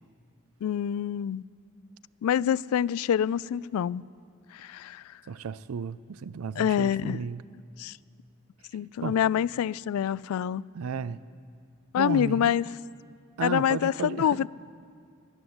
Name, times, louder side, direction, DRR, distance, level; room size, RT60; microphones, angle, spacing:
voice 1, 0.6-1.4 2.2-4.0 4.5-5.2 6.6-7.2 7.8-8.0 8.7-10.6 11.9-12.7 13.4-14.5, left 9 dB, 80° left, 0.3 m, -26 dB
voice 2, 5.3-7.4 9.0-9.2 10.7-11.2 12.0-12.5 13.4-14.4, right 5 dB, 75° right, 0.4 m, -33 dB
15.5 x 11.5 x 8.0 m
head